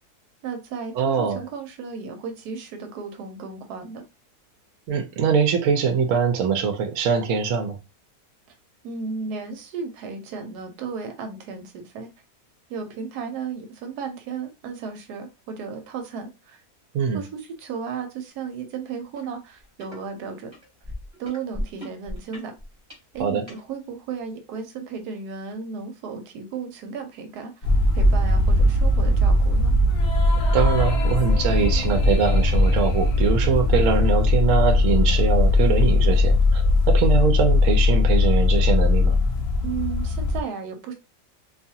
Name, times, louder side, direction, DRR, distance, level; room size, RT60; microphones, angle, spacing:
voice 1, 0.4-4.0 8.8-12.1 12.7-16.6 17.1-20.5 21.2-22.5 23.1-27.5 27.9-29.8 39.6-40.9, right 5 dB, 85° right, 1.2 m, -34 dB
voice 2, 0.9-1.4 4.9-7.8 16.9-17.2 23.2-23.4 30.5-39.2, right 6 dB, 65° right, 0.9 m, -23 dB
sound 1, 19.1-19.3 19.6-20.0 20.5-23.6 24.3-24.4, equal, 25° right, 1.0 m, -36 dB
sound 2, 27.6-40.4, left 2 dB, 60° left, 0.7 m, -19 dB
sound 3, 29.9-34.6, left 4 dB, 85° left, 1.1 m, -36 dB
2.5 x 2.4 x 2.7 m
omnidirectional pair, 1.7 m